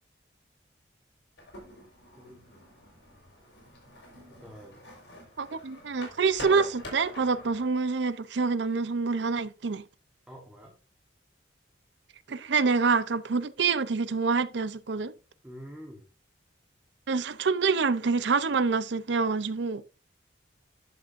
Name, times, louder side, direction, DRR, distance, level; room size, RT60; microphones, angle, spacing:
sound 1, 1.4-7.7, left 1 dB, 70° left, 4.6 m, -45 dB
voice 1, 2.2-2.5 4.4-4.8 10.3-10.7 15.4-16.1, equal, 5° right, 1.2 m, -46 dB
voice 2, 5.4-9.8 12.3-15.1 17.1-19.8, right 4 dB, 70° right, 0.6 m, -26 dB
11.0 x 6.0 x 2.6 m
head